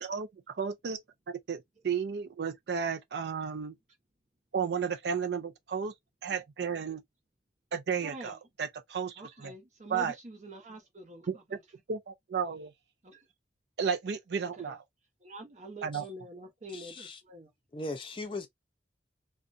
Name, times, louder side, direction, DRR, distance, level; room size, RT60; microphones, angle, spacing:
voice 1, 0.0-3.8 4.5-5.9 6.2-7.0 7.7-9.5 9.9-10.1 11.3-11.6 11.9-12.7 13.8-14.8 15.8-16.0, right 6 dB, 65° right, 0.4 m, -33 dB
voice 2, 8.0-8.4 9.2-11.6 13.0-13.3 14.4-14.8 15.2-17.5, right 1 dB, 40° right, 0.8 m, -46 dB
voice 3, 16.7-17.2 17.7-18.5, left 2 dB, 30° left, 0.5 m, -38 dB
2.4 x 2.2 x 2.5 m
head